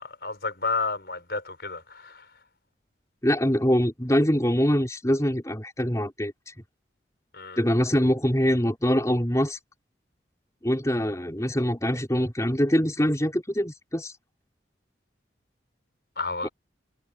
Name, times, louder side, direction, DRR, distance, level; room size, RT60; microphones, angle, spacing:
voice 1, 0.0-2.2 7.3-7.6 16.2-16.5, left 4 dB, 60° left, 6.6 m, -31 dB
voice 2, 3.2-6.5 7.6-9.6 10.6-14.1 16.4-16.5, equal, 15° left, 3.7 m, -24 dB
head